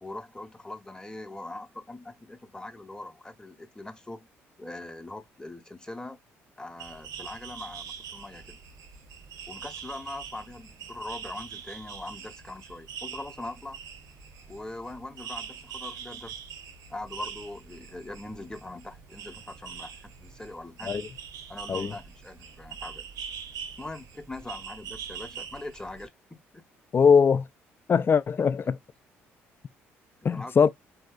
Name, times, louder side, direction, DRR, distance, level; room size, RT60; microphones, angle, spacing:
voice 1, 0.0-4.3 4.6-6.2 6.6-8.6 9.5-13.8 14.5-16.4 16.9-21.0 21.5-23.0 23.8-26.6 30.3-30.7, left 2 dB, 10° left, 0.8 m, -41 dB
sound 1, 6.8-26.1, right 7 dB, 65° right, 0.8 m, -43 dB
voice 2, 26.9-27.5 27.9-28.8 30.2-30.7, left 6 dB, 35° left, 0.4 m, -21 dB
3.9 x 2.8 x 2.3 m
hypercardioid pair, 50°, 7 cm